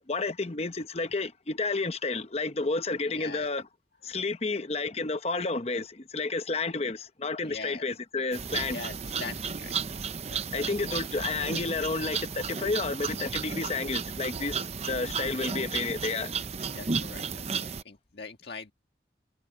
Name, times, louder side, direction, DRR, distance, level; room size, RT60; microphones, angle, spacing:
voice 1, 0.1-3.7 4.0-8.8 10.5-16.4, left 3 dB, 35° left, 0.9 m, -31 dB
voice 2, 3.1-3.5 7.4-7.8 8.7-9.7 10.3-11.0 15.0-15.6 16.7-18.7, left 4 dB, 60° left, 1.8 m, -43 dB
sound 1, 8.3-17.8, right 5 dB, 35° right, 0.7 m, -34 dB
head